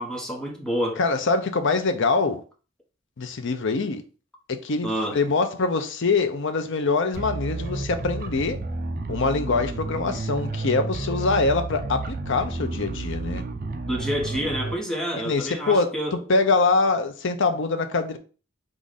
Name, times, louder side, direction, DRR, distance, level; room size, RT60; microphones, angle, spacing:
voice 1, 0.0-1.0 4.8-5.2 13.8-16.2, equal, 5° left, 1.1 m, -28 dB
voice 2, 1.0-2.4 3.2-4.0 4.5-8.6 9.1-13.4 15.2-18.2, left 3 dB, 60° left, 0.6 m, -24 dB
sound 1, 7.1-14.7, right 3 dB, 45° right, 0.6 m, -31 dB
4.8 x 2.5 x 4.0 m
head